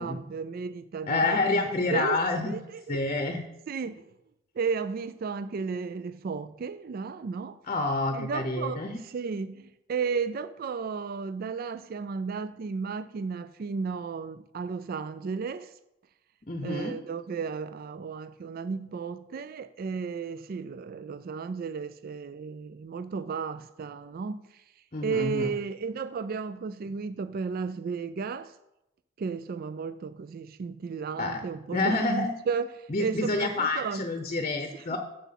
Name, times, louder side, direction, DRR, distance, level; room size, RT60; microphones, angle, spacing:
voice 1, 0.0-1.6 1.9-2.2 2.5-3.1 3.7-4.1 4.6-7.6 8.1-15.7 16.6-24.6 25.0-28.6 29.2-34.1, right 5 dB, 50° right, 0.3 m, -34 dB
voice 2, 1.1-2.6 2.9-3.4 7.7-9.0 16.5-17.0 24.9-25.5 31.2-31.4 31.7-32.3 32.9-35.0, left 2 dB, 35° left, 0.7 m, -28 dB
7.2 x 7.1 x 5.8 m
head